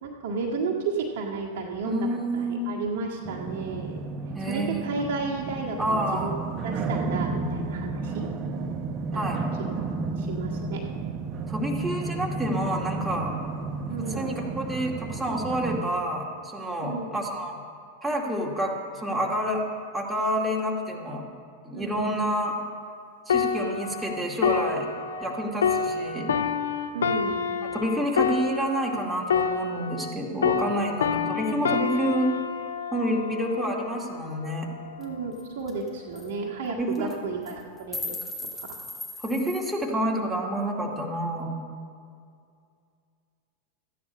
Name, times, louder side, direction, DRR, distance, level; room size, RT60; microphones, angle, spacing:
voice 1, 0.0-2.1 2.3-4.0 4.4-6.4 6.6-8.3 9.1-9.2 9.6-9.7 10.2-10.8 13.9-14.3 16.8-17.1 21.7-22.0 26.9-27.5 30.6-30.8 31.6-31.7 35.0-38.1 38.4-38.8, right 4 dB, 55° right, -2 dB, 1.8 m, -33 dB
voice 2, 1.8-2.7 4.3-4.9 5.8-6.3 9.1-9.4 11.5-13.3 14.1-17.6 18.0-19.6 19.9-21.3 21.7-22.6 23.3-24.9 25.2-26.4 27.7-32.3 32.9-34.7 36.8-37.2 39.2-41.6, equal, 5° right, -2 dB, 2.2 m, -28 dB
sound 1, 3.2-15.8, right 3 dB, 30° right, 1.0 m, -32 dB
sound 2, 23.3-30.2 30.4-34.0 34.6-34.9, left 6 dB, 65° left, 0.6 m, -28 dB
sound 3, 35.0-35.1 35.4-35.5 35.7-35.9 36.1-36.3 36.9-37.1 37.5-39.8, left 1 dB, 15° left, 2.1 m, -37 dB
14.0 x 9.5 x 5.4 m, 2.3 s
figure-of-eight pair, 90°, 0 cm